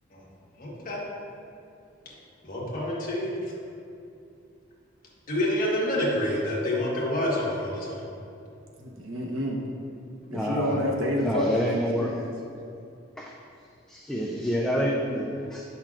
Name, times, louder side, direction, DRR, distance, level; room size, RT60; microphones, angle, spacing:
voice 1, 0.6-1.0 2.4-3.3 5.3-8.0, left 1 dB, 45° left, -5 dB, 1.4 m, -28 dB
voice 2, 8.8-9.6 10.3-11.5 12.0-12.2, left 1 dB, 90° right, -1 dB, 1.0 m, -28 dB
voice 3, 10.3-10.8 11.2-12.2 13.2-13.3 13.9-15.6, equal, 5° left, -3 dB, 0.4 m, -28 dB
8.6 x 5.6 x 2.4 m, 2.5 s
head